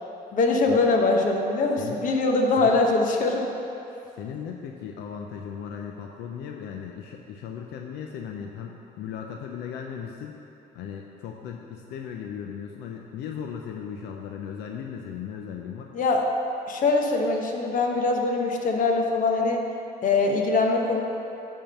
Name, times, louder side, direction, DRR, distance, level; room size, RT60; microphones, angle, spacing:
voice 1, 0.3-3.5 15.9-16.3 16.7-19.6 20.0-21.0, left 3 dB, 50° left, 2 dB, 1.1 m, -22 dB
voice 2, 4.2-10.4 10.7-15.9, left 7 dB, 85° left, 2 dB, 0.6 m, -37 dB
10.5 x 3.8 x 6.8 m, 2.9 s
cardioid pair, 110°, 17 cm